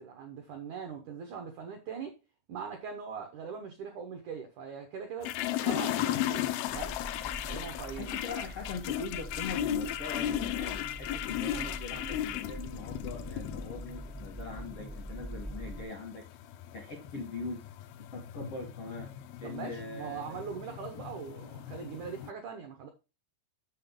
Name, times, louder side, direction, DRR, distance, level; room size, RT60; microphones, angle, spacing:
voice 1, 0.0-2.1 2.5-5.3 5.6-7.0 7.5-8.1 19.4-22.9, right 6 dB, 80° right, 1.7 m, -41 dB
sound 1, 5.2-22.3, left 12 dB, 85° left, 2.2 m, -36 dB
sound 2, 6.7-15.9, equal, ahead, 0.5 m, -44 dB
voice 2, 7.9-16.2 16.7-17.6 18.0-19.1 19.4-20.4, left 3 dB, 70° left, 1.4 m, -41 dB
7.6 x 6.3 x 3.7 m
omnidirectional pair, 5.0 m